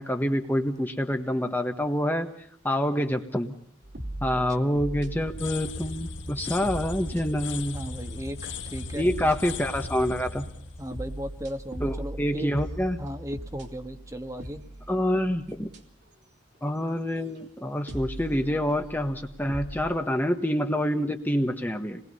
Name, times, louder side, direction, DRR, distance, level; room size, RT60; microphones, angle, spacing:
voice 1, 0.0-2.3 2.6-3.5 4.2-7.8 8.9-10.5 11.8-13.0 14.9-15.7 16.6-22.0, equal, 10° left, 5 dB, 1.3 m, -27 dB
sound 1, 3.8-6.2 6.6-8.1 8.5-10.5 10.9-16.1 16.5-16.7 17.1-17.4 17.9-20.0, right 1 dB, 55° right, 3.0 m, -40 dB
sound 2, 5.2-12.0, left 3 dB, 65° left, 1.6 m, -38 dB
voice 2, 7.7-9.3 10.8-12.5 13.0-14.6, equal, 15° right, 7 dB, 1.5 m, -37 dB
28.5 x 21.0 x 5.5 m, 0.66 s
head